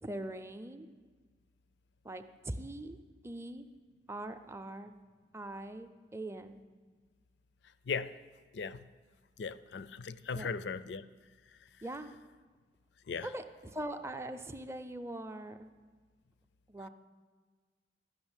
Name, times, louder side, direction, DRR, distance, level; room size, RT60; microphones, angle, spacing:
voice 1, 0.0-0.9 2.0-3.0 3.2-3.7 4.1-4.9 5.3-6.6 10.3-10.5 11.8-12.1 13.2-15.7 16.7-16.9, right 1 dB, 15° right, 8 dB, 0.5 m, -42 dB
voice 2, 8.5-8.9 9.4-11.1 11.5-11.8 13.1-13.3, left 5 dB, 70° left, 16 dB, 0.4 m, -38 dB
12.0 x 6.1 x 8.9 m, 1.5 s
head